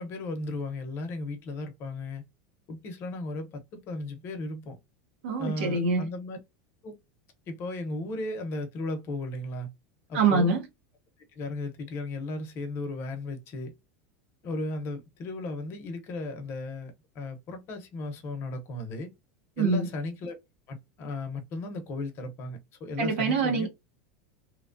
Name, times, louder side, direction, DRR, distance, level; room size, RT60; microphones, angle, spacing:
voice 1, 0.0-2.2 2.7-4.8 5.4-6.4 6.8-6.9 7.5-9.7 10.1-10.5 11.3-13.7 14.4-19.1 19.6-20.4 20.7-23.7, left 2 dB, 40° left, 0.8 m, -35 dB
voice 2, 5.2-6.1 10.1-10.6 19.6-19.9 23.0-23.7, right 4 dB, 80° right, 1.0 m, -25 dB
3.0 x 2.2 x 2.5 m
supercardioid pair, 135°, 6 cm